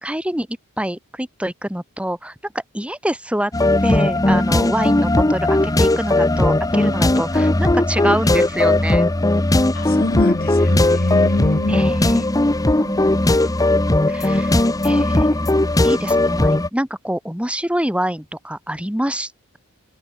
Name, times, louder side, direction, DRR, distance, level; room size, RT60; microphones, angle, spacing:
voice 1, 0.0-3.5 3.8-9.1 11.7-12.5 12.8-19.6, right 1 dB, 5° right, 3.2 m, -26 dB
sound 1, 3.5-16.7, left 1 dB, 15° left, 0.8 m, -17 dB
voice 2, 9.7-11.8, left 2 dB, 45° left, 0.9 m, -23 dB
head